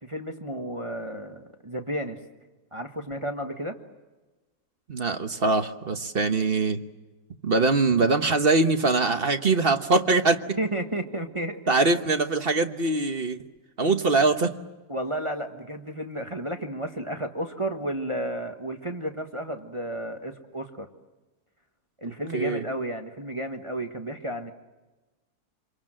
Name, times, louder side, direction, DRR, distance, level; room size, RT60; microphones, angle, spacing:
voice 1, 0.0-2.2 2.7-3.8 10.6-11.8 14.9-20.9 22.0-24.5, right 1 dB, 20° right, 4 dB, 1.4 m, -32 dB
voice 2, 4.9-6.8 7.4-10.6 11.7-13.4 13.8-14.5 22.3-22.6, right 3 dB, 40° right, 7 dB, 1.2 m, -23 dB
28.0 x 23.0 x 7.6 m, 1.2 s
omnidirectional pair, 1.7 m